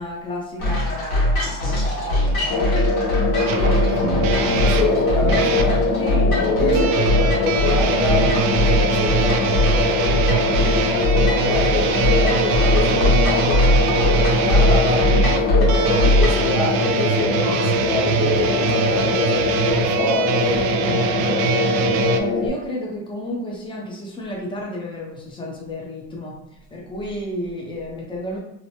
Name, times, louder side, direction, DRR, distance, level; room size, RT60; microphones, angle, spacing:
voice 1, 0.0-2.8 3.5-4.5 6.0-7.0 17.3-17.9 20.8-21.4 22.0-28.4, equal, 10° left, -2 dB, 0.8 m, -32 dB
sound 1, 0.6-16.5, left 1 dB, 60° left, 1.4 m, -21 dB
sound 2, 2.5-22.5, left 3 dB, 40° left, 0.5 m, -23 dB
voice 2, 3.3-6.0 6.3-10.7 10.9-20.8 21.2-21.4, left 3 dB, 80° left, 1 dB, 0.8 m, -27 dB
sound 3, 3.5-5.7 6.7-22.2, right 7 dB, 55° right, 0.5 m, -24 dB
2.9 x 2.2 x 2.8 m, 0.85 s
supercardioid pair, 100°, 42 cm